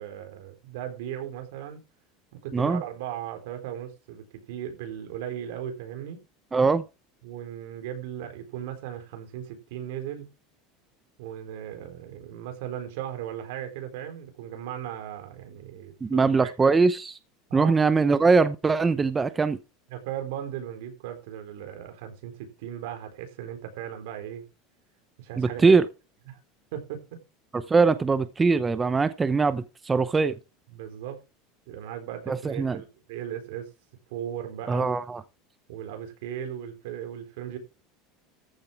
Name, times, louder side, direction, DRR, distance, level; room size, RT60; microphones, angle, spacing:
voice 1, 0.0-1.8 2.3-6.2 7.2-10.3 11.2-16.7 17.5-17.7 19.9-24.4 25.2-25.8 26.3-26.4 26.7-27.2 30.7-31.2 31.7-33.7 34.1-34.9 35.7-37.6, right 10 dB, 80° right, 4.3 m, -37 dB
voice 2, 6.5-6.8 16.0-17.1 17.5-19.6 25.4-25.8 27.5-30.4 32.3-32.8 34.7-35.2, right 4 dB, 15° right, 0.7 m, -22 dB
14.5 x 7.4 x 4.5 m
supercardioid pair, 150°, 0 cm